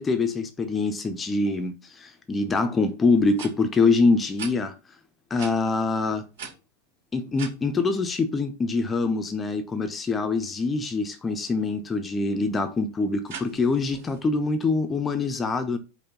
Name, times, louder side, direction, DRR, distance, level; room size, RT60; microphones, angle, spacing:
voice 1, 0.0-4.7 5.3-6.3 7.1-15.8, left 3 dB, 15° left, 0.5 m, -24 dB
sound 1, 3.3-3.5 4.4-4.5 5.3-5.5 6.3-7.6 13.2-14.2, right 6 dB, 60° right, 2.4 m, -39 dB
5.0 x 2.1 x 3.6 m
figure-of-eight pair, 90°, 0 cm